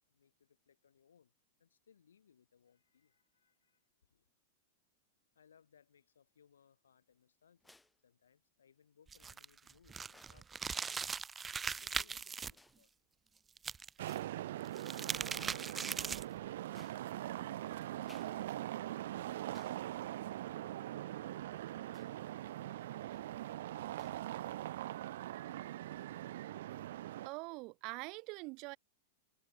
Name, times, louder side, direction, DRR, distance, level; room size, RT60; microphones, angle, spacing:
voice 1, 0.1-1.3 1.6-4.3 5.3-7.7 8.0-11.2 11.7-12.9 15.0-19.8 20.3-25.4, left 7 dB, 80° left, 6.3 m, -70 dB
sound 1, 7.6-8.0 9.1-9.2 10.0-10.5 11.6-11.8 12.5-12.8 14.0-14.3 14.7-14.9 15.3-15.7 16.1-17.4 18.0-18.4 18.7-18.8 19.5-19.9 20.2-20.4 21.9-22.3 22.9-23.3 24.0-24.3, left 2 dB, 5° left, 1.7 m, -64 dB
sound 2, 9.1-12.5 13.6-14.1 14.6-16.4, right 5 dB, 20° right, 0.6 m, -40 dB
sound 3, 14.0-27.3, right 14 dB, 65° right, 0.5 m, -42 dB
voice 2, 27.2-28.8, right 27 dB, 50° right, 1.1 m, -44 dB
hypercardioid pair, 105°, 0 cm